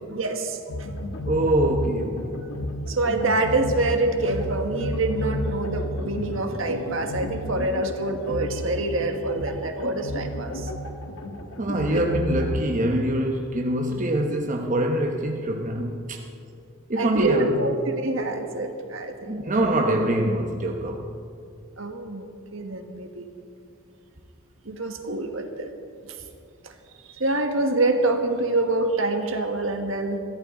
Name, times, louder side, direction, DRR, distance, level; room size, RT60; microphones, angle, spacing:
voice 1, 0.1-0.9 2.9-10.7 11.9-12.0 17.0-19.4 21.8-22.3 22.5-23.3 24.6-25.7 26.1-26.2 26.6-26.7 27.0-30.2, right 2 dB, 70° right, 4 dB, 1.6 m, -26 dB
sound 1, 0.7-12.6, left 1 dB, 80° left, 1.4 m, -32 dB
voice 2, 1.3-2.2 11.6-16.2 16.9-17.5 19.3-21.1, right 1 dB, 40° right, 2 dB, 1.0 m, -24 dB
22.5 x 15.0 x 3.8 m, 2.6 s
head